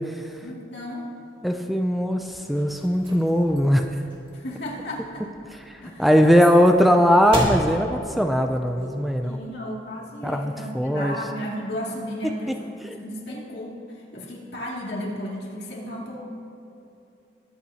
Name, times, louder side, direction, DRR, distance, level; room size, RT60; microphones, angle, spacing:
voice 1, 0.4-1.1 4.3-5.3 5.8-6.4 9.2-16.2, equal, 65° left, -4 dB, 2.5 m, -34 dB
voice 2, 1.4-3.9 5.7-9.4 10.2-11.1 12.2-12.3 12.8-13.0, equal, ahead, 5 dB, 0.4 m, -20 dB
sound 1, 2.3-9.4, equal, 30° right, 2.4 m, -35 dB
21.0 x 8.9 x 2.9 m, 2.9 s
head